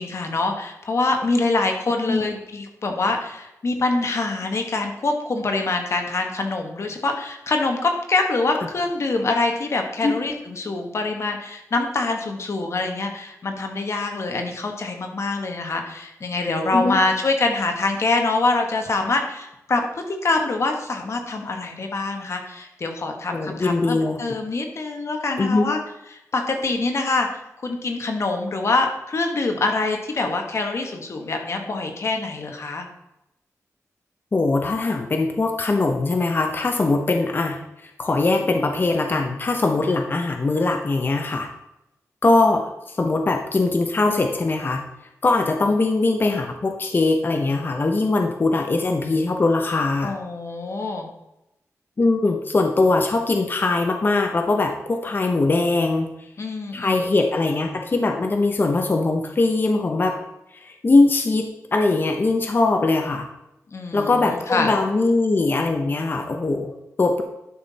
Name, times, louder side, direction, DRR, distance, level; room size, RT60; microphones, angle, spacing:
voice 1, 0.0-25.8 26.3-32.9 50.0-51.1 56.4-57.1 63.7-64.7, left 3 dB, 55° left, 4 dB, 1.5 m, -25 dB
voice 2, 23.3-24.2 25.4-25.7 34.3-41.5 42.2-44.8 45.2-50.1 52.0-56.1 56.7-60.2 60.5-61.5 61.7-63.3 63.9-66.7 67.0-67.2, left 3 dB, 40° left, 4 dB, 0.9 m, -21 dB
11.5 x 6.0 x 4.2 m, 0.89 s
wide cardioid pair, 105°, 6 cm